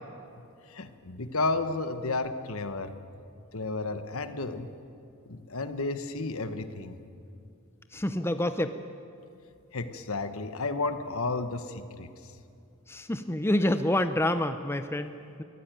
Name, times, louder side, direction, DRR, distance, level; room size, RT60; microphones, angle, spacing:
voice 1, 0.7-2.9 3.5-4.7 5.2-7.0 9.7-12.3, left 3 dB, 65° left, 10 dB, 1.2 m, -32 dB
voice 2, 7.9-8.8 12.9-15.4, left 1 dB, 10° left, 9 dB, 0.6 m, -28 dB
23.5 x 15.0 x 9.1 m, 2.6 s
head